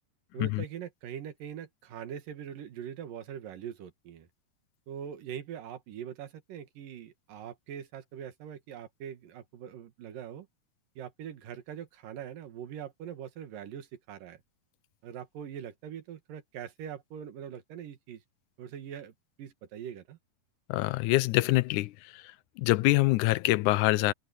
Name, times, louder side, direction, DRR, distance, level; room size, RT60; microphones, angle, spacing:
voice 1, 0.3-4.3 4.9-10.5 11.0-14.4 15.0-18.2 18.6-20.2, right 9 dB, 80° right, 3.4 m, -42 dB
voice 2, 20.7-21.9 22.6-24.1, left 19 dB, 80° left, 1.9 m, -25 dB
omnidirectional pair, 3.8 m